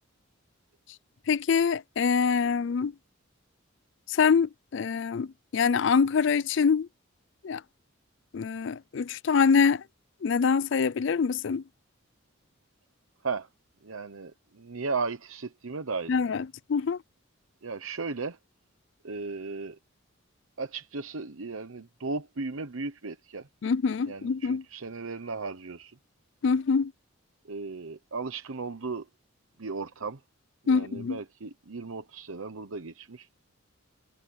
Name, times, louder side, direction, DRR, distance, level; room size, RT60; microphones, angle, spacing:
voice 1, 1.3-2.9 4.1-6.9 7.4-7.6 8.3-9.8 10.2-11.6 16.1-17.0 23.6-24.6 26.4-26.9 30.7-31.2, left 5 dB, 60° left, 0.4 m, -25 dB
voice 2, 13.8-16.2 17.6-18.4 19.0-19.8 20.6-23.5 24.1-26.0 27.5-29.1 29.6-30.2 30.6-33.3, right 4 dB, 80° right, 1.0 m, -36 dB
head